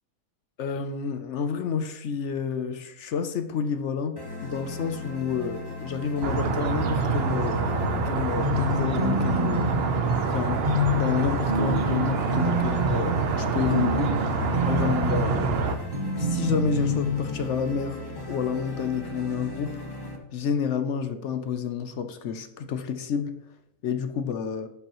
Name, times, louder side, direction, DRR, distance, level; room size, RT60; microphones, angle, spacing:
voice 1, 0.6-7.6 8.0-14.4 14.6-15.5 16.2-18.0 18.3-19.8 20.3-23.4 23.8-24.7, left 6 dB, 65° left, 0.8 m, -29 dB
sound 1, 4.2-20.2, left 2 dB, 20° left, 0.9 m, -38 dB
sound 2, 6.2-15.8, right 4 dB, 55° right, 0.7 m, -26 dB
sound 3, 8.4-17.3, equal, 35° right, 1.0 m, -28 dB
12.0 x 5.4 x 3.0 m
omnidirectional pair, 1.7 m